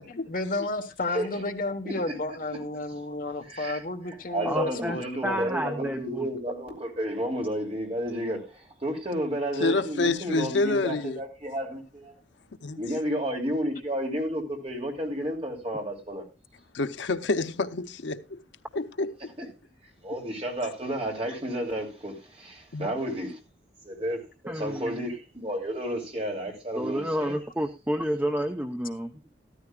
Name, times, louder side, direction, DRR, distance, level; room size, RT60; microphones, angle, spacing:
voice 1, 0.1-5.5, left 2 dB, 50° left, 1.2 m, -32 dB
voice 2, 3.5-3.8 4.3-12.1 12.8-16.2 19.4-19.5 20.0-23.4 23.8-27.3, equal, 30° right, 2.8 m, -31 dB
voice 3, 4.4-5.0 5.2-6.3 24.5-25.1 26.8-29.1, equal, 10° right, 0.6 m, -30 dB
voice 4, 9.6-11.2 12.6-12.8 16.7-18.4 18.7-19.1 22.7-22.9, left 3 dB, 80° left, 0.7 m, -27 dB
14.0 x 13.0 x 2.3 m
head